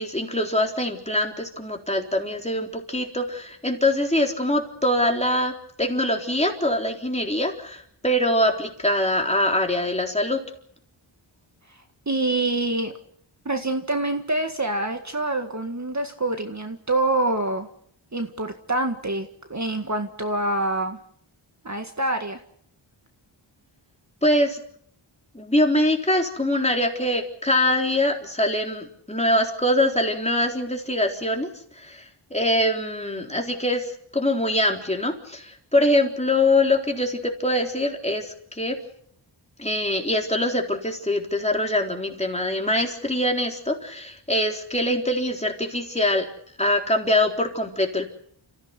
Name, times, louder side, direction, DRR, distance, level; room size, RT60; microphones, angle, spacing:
voice 1, 0.0-10.4 24.2-24.6 25.3-31.5 31.8-38.8 39.6-46.3 46.6-48.1, left 1 dB, 15° left, 2 dB, 3.8 m, -23 dB
voice 2, 12.1-12.9 13.5-17.7 18.1-21.0 21.6-22.4, right 2 dB, 35° right, 5 dB, 1.9 m, -26 dB
29.5 x 15.5 x 8.2 m, 0.67 s
wide cardioid pair, 85°, 49 cm